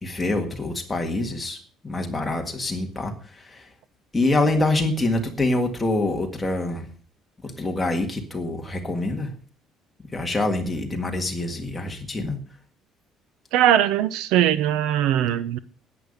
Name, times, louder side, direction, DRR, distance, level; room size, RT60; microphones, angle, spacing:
voice 1, 0.0-1.6 1.8-3.7 4.1-6.9 7.4-9.3 10.1-12.4, left 2 dB, 10° left, 2 dB, 1.8 m, -25 dB
voice 2, 13.5-15.6, right 11 dB, 85° right, 15 dB, 0.8 m, -20 dB
11.0 x 8.7 x 6.5 m, 0.42 s
cardioid pair, 175°, 0 cm